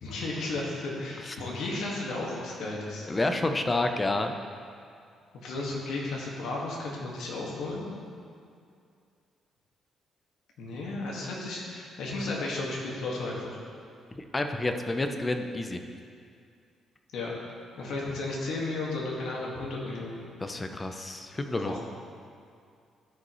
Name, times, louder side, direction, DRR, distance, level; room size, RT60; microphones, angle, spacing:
voice 1, 0.0-3.1 5.3-7.9 10.6-13.6 17.1-17.3 17.8-20.2 21.6-21.8, left 2 dB, 75° left, -3 dB, 1.8 m, -34 dB
voice 2, 3.1-4.3 14.2-15.8 20.4-21.8, left 2 dB, 25° left, 6 dB, 0.7 m, -29 dB
13.5 x 5.3 x 3.1 m, 2.4 s
cardioid pair, 90°, 0 cm